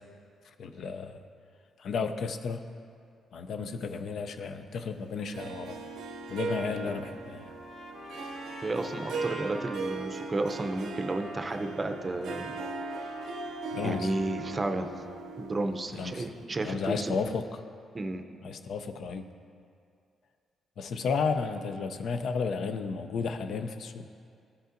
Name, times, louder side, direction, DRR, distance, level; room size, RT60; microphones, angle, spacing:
voice 1, 0.6-1.2 1.8-2.6 3.3-5.8 6.3-7.5 13.7-14.1 15.9-16.3 16.6-17.6 18.4-19.3 20.8-24.1, left 5 dB, 70° left, 8 dB, 0.4 m, -33 dB
Harp, 5.3-16.5, right 3 dB, 85° right, 0.6 m, -39 dB
Trumpet, 7.4-14.7, left 2 dB, 45° left, 1.0 m, -48 dB
voice 2, 8.6-12.5 13.0-13.1 13.8-14.9 15.4-17.2 17.9-18.2, right 2 dB, 30° right, 6 dB, 0.5 m, -32 dB
13.0 x 5.3 x 2.5 m, 2.3 s
cardioid pair, 90°, 0 cm